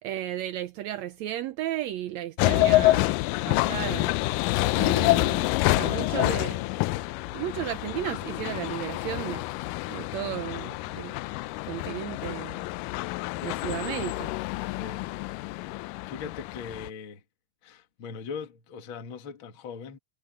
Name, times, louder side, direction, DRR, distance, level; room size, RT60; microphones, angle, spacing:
voice 1, 0.0-3.1 3.5-4.1 4.8-9.4 9.9-11.1 11.6-12.6 13.4-14.3, right 12 dB, 80° right, 1.6 m, -34 dB
sound 1, 2.4-16.9, left 19 dB, 90° left, 2.2 m, -27 dB
voice 2, 15.6-17.2 17.6-20.0, left 6 dB, 45° left, 2.2 m, -40 dB
omnidirectional pair, 3.8 m